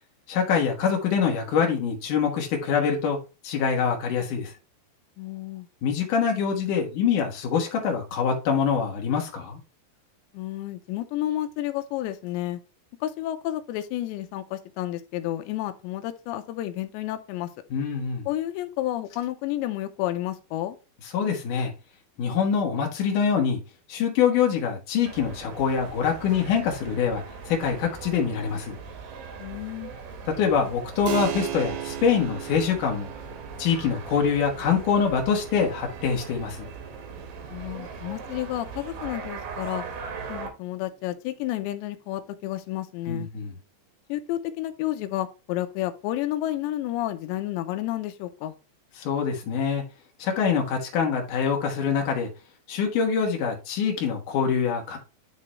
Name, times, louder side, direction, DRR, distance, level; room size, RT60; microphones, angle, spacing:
voice 1, 0.3-3.2 3.4-4.5 5.8-9.6 17.7-18.3 21.1-21.7 22.2-23.6 23.9-28.8 30.3-33.1 33.6-36.7 43.1-43.5 49.0-49.8 50.2-52.3 52.7-55.0, left 6 dB, 60° left, 2.5 m, -25 dB
voice 2, 5.2-5.7 10.3-12.6 13.0-17.5 18.3-20.8 29.4-29.9 37.5-39.8 40.3-43.3 44.1-48.6, left 14 dB, 80° left, 2.9 m, -31 dB
sound 1, 25.0-40.5, right 5 dB, 65° right, 2.3 m, -40 dB
Keyboard (musical), 31.1-41.3, right 13 dB, 85° right, 3.1 m, -39 dB
11.5 x 3.8 x 3.1 m
omnidirectional pair, 5.2 m